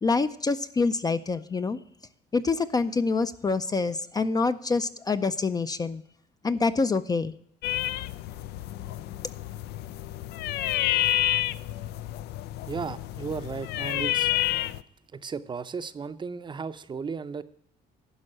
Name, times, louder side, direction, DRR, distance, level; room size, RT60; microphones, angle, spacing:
voice 1, 0.0-1.8 2.3-6.0 6.4-7.3, left 4 dB, 20° left, 11 dB, 0.4 m, -26 dB
sound 1, 7.6-14.8, left 15 dB, 80° left, 0.4 m, -29 dB
voice 2, 12.7-14.3 15.1-17.4, right 5 dB, 30° right, 12 dB, 0.6 m, -35 dB
11.0 x 5.3 x 7.4 m, 0.71 s
cardioid pair, 110°, 17 cm